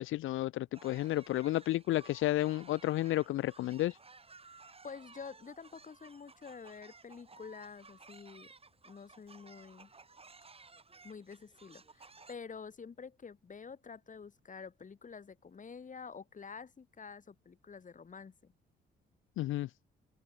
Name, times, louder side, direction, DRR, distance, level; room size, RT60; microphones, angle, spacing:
voice 1, 0.0-4.0 19.4-19.7, left 15 dB, 75° left, 0.5 m, -32 dB
sound 1, 0.7-12.3, right 4 dB, 30° right, 4.2 m, -57 dB
voice 2, 4.8-8.5 8.8-9.9 11.0-18.5, left 5 dB, 40° left, 4.6 m, -48 dB
cardioid pair, 90°, 20 cm